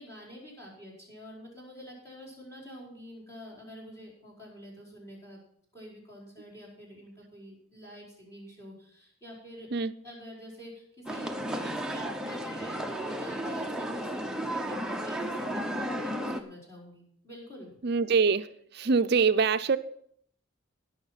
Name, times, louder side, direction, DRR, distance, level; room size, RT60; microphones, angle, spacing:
voice 1, 0.0-5.4 5.7-9.7 10.0-17.7, equal, 15° left, 4.8 m, -47 dB
sound 1, 11.1-16.4, right 1 dB, 5° right, 0.7 m, -33 dB
voice 2, 17.8-18.5 18.7-19.8, right 5 dB, 50° right, 0.5 m, -24 dB
17.5 x 6.4 x 5.7 m
head